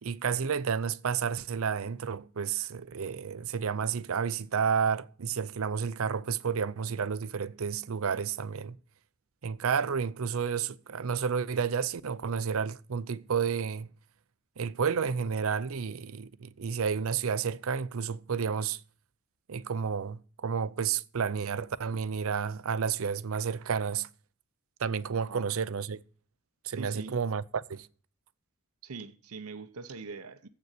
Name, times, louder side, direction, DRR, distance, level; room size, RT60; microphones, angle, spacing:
voice 1, 0.0-8.8 9.4-13.9 14.6-18.8 19.5-24.1 24.8-26.0 26.6-27.9, right 6 dB, 70° right, 0.5 m, -31 dB
voice 2, 25.1-25.5 26.7-27.2 28.8-30.5, right 4 dB, 85° right, 0.9 m, -42 dB
7.9 x 6.8 x 8.2 m
head